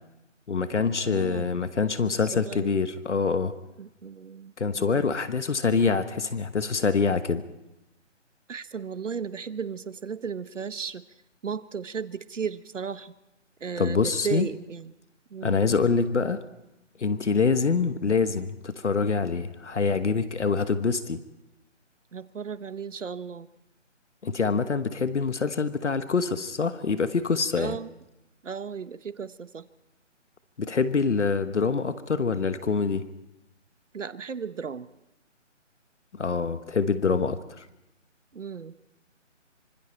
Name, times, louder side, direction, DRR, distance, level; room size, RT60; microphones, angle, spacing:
voice 1, 0.5-3.5 4.6-7.4 13.8-14.5 15.4-16.4 17.0-21.2 24.2-27.8 30.6-33.1 36.1-37.6, left 5 dB, 65° left, 11 dB, 1.3 m, -25 dB
voice 2, 1.0-1.7 2.2-2.8 3.8-5.1 8.5-11.0 11.4-13.1 13.6-14.9 15.3-15.6 22.1-23.5 27.5-27.9 28.4-29.7 33.9-34.9 38.3-38.7, right 6 dB, 75° right, 15 dB, 1.1 m, -35 dB
26.5 x 25.0 x 4.4 m, 0.90 s
hypercardioid pair, 170°, 37 cm